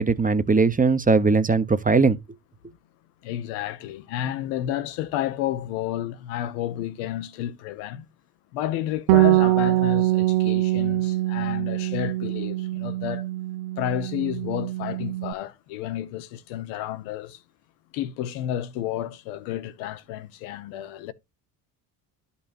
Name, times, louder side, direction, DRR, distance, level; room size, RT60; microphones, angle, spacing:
voice 1, 0.0-2.2, right 4 dB, 20° right, 0.8 m, -19 dB
voice 2, 3.2-8.1 8.5-13.3 13.8-17.4 17.9-21.1, left 11 dB, 85° left, 0.8 m, -31 dB
Bass guitar, 9.1-15.3, right 17 dB, 80° right, 0.6 m, -23 dB
11.5 x 5.6 x 2.5 m
hypercardioid pair, 60°, 45 cm